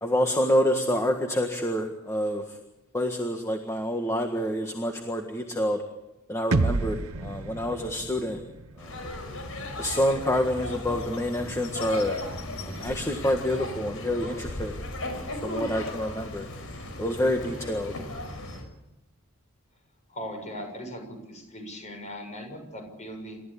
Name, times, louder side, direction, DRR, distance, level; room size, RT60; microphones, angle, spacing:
voice 1, 0.0-2.6 2.9-5.8 6.3-8.4 8.8-9.0 9.8-12.2 12.6-14.8 15.1-16.5 17.0-17.9, left 1 dB, 15° left, 3 dB, 1.6 m, -27 dB
sound 1, 6.5-10.4, right 3 dB, 75° right, 0.9 m, -31 dB
sound 2, 8.8-18.6, left 1 dB, 70° left, 5.4 m, -36 dB
voice 2, 20.1-23.4, equal, 35° left, 4 dB, 6.9 m, -39 dB
28.5 x 14.0 x 8.6 m, 0.93 s
head